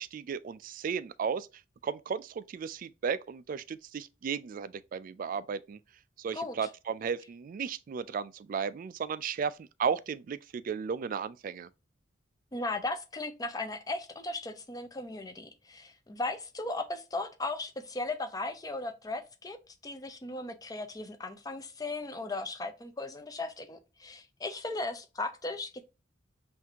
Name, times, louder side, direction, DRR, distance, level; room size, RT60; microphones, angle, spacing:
voice 1, 0.0-1.5 1.8-5.8 6.2-11.7, right 6 dB, 45° right, 0.3 m, -34 dB
voice 2, 12.5-19.6 19.8-25.8, left 2 dB, 20° left, 0.5 m, -37 dB
5.6 x 2.6 x 2.8 m
head